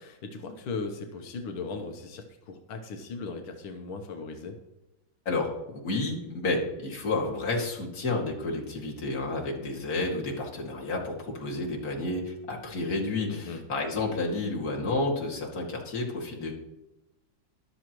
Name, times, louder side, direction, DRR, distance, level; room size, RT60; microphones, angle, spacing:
voice 1, 0.0-4.6 13.3-13.6, left 4 dB, 90° left, 4 dB, 1.9 m, -38 dB
voice 2, 5.3-16.5, left 2 dB, 45° left, -2 dB, 2.7 m, -30 dB
13.5 x 11.5 x 3.1 m, 0.97 s
omnidirectional pair, 2.2 m